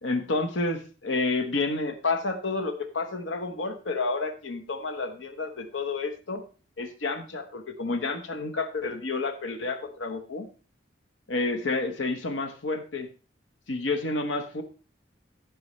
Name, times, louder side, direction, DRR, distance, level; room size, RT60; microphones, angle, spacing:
voice 1, 0.0-6.4 6.8-10.5 11.3-13.1 13.7-14.6, left 3 dB, 80° left, 6 dB, 1.1 m, -30 dB
15.0 x 6.2 x 3.2 m, 0.35 s
head